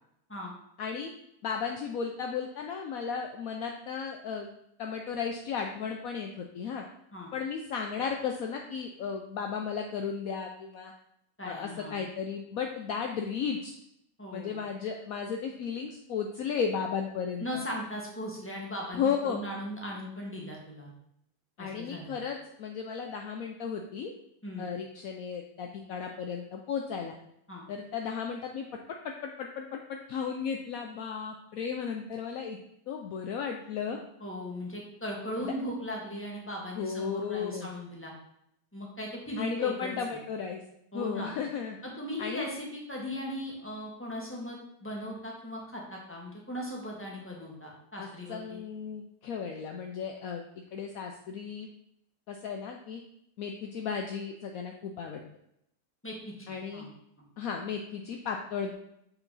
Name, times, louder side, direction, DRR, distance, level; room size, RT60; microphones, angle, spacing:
voice 1, 0.8-1.1 1.4-4.5 4.8-6.9 7.3-10.9 11.4-13.7 14.3-17.6 19.0-19.4 21.6-24.1 24.6-27.1 27.7-28.7 29.0-32.6 32.9-34.0 35.3-35.5 36.8-37.7 39.4-40.6 40.9-41.8 42.2-42.4 48.0-51.7 52.3-53.0 53.4-55.2 56.5-56.8 57.4-58.7, left 6 dB, 70° left, 3 dB, 1.0 m, -34 dB
voice 2, 11.4-12.0 14.2-14.6 17.4-20.9 21.6-22.1 24.4-24.7 27.5-27.6 33.9-38.1 38.7-40.2 40.9-41.3 41.8-48.6 56.0-56.5 56.7-56.9, equal, 10° left, -2 dB, 1.6 m, -38 dB
6.8 x 5.8 x 4.0 m, 0.77 s
omnidirectional pair, 1.7 m